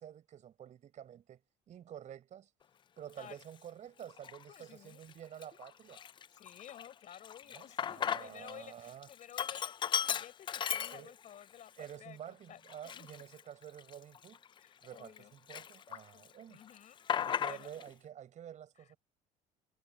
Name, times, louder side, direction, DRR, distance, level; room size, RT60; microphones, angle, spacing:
voice 1, 0.0-1.4 1.7-2.5 3.0-6.0 7.5-7.7 8.0-9.1 10.9-11.1 11.8-14.4 14.8-16.6 17.2-19.0, right 10 dB, 50° right, 6.7 m, -49 dB
Sink (filling or washing), 3.3-3.4 4.1-4.6 5.0-5.1 5.4-8.5 8.8-11.4 11.8-11.9 12.6-15.2 15.5-16.3 16.5-17.9, left 8 dB, 30° left, 0.4 m, -37 dB
voice 2, 4.5-5.0 6.4-13.2 14.6-15.3 16.1-17.0 17.4-17.7, left 10 dB, 55° left, 4.8 m, -54 dB
supercardioid pair, 95°, 16 cm